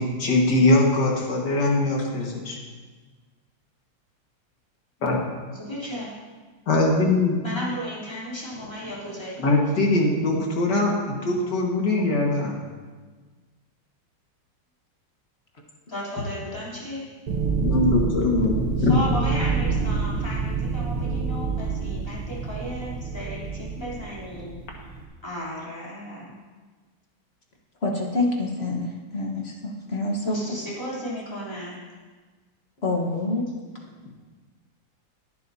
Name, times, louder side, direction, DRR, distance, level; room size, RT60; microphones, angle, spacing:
voice 1, 0.0-2.6 5.0-5.2 6.7-7.4 9.4-12.6 17.6-18.9, left 2 dB, 55° left, -1 dB, 2.3 m, -22 dB
voice 2, 5.5-6.1 7.4-9.4 15.9-17.1 18.8-24.9 25.2-26.3 30.1-31.8 33.9-34.0, equal, 10° left, -7 dB, 3.5 m, -34 dB
sound 1, 17.3-25.1, right 4 dB, 90° right, 1.9 m, -27 dB
voice 3, 27.8-28.9 29.1-30.4 32.8-33.4, left 2 dB, 35° left, 0 dB, 1.4 m, -26 dB
18.0 x 9.7 x 2.8 m, 1.4 s
omnidirectional pair, 2.2 m